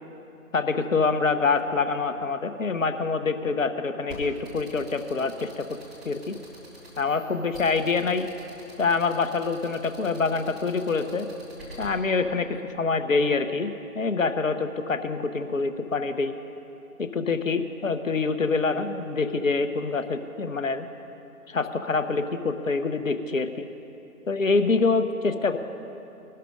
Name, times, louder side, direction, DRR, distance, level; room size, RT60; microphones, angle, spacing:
voice 1, 0.5-5.7 6.0-6.3 7.0-8.3 8.8-11.3 11.8-16.3 17.0-20.9 21.5-23.7 24.3-25.6, left 4 dB, 60° left, 9 dB, 1.0 m, -25 dB
sound 1, 4.1-11.9, right 1 dB, ahead, 1.1 m, -45 dB
20.0 x 12.5 x 5.1 m, 2.9 s
figure-of-eight pair, 155°, 44 cm